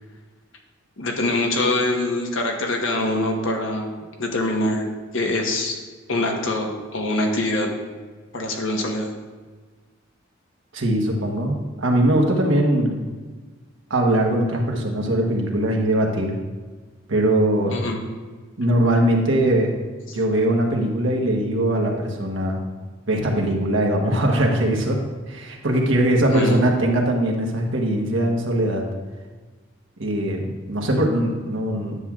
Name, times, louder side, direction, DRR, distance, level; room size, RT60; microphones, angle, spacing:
voice 1, 1.0-3.9 4.2-4.9 5.1-5.8 6.1-7.7 8.3-9.1 17.7-18.0 20.1-20.2 26.3-26.7, left 2 dB, 85° left, 2 dB, 1.2 m, -24 dB
voice 2, 10.7-13.0 13.9-16.4 17.1-17.7 18.6-19.8 20.1-22.6 23.1-25.0 25.3-28.8 30.0-32.0, right 1 dB, 80° right, 0 dB, 1.2 m, -21 dB
9.6 x 7.3 x 2.4 m, 1.4 s
head